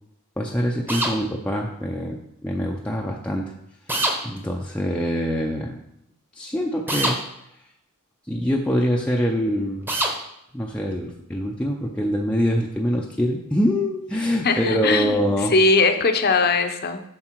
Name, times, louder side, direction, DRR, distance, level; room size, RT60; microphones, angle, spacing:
voice 1, 0.4-3.5 4.2-5.8 6.3-7.2 8.3-9.9 10.5-15.5, equal, 5° left, -2 dB, 0.5 m, -24 dB
sound 1, 0.9-1.2 3.9-4.2 6.9-7.2 9.9-10.2, right 1 dB, 10° right, 0.9 m, -23 dB
voice 2, 14.4-15.2 15.5-17.0, left 3 dB, 45° left, 7 dB, 0.7 m, -19 dB
7.4 x 5.3 x 4.5 m, 0.79 s
head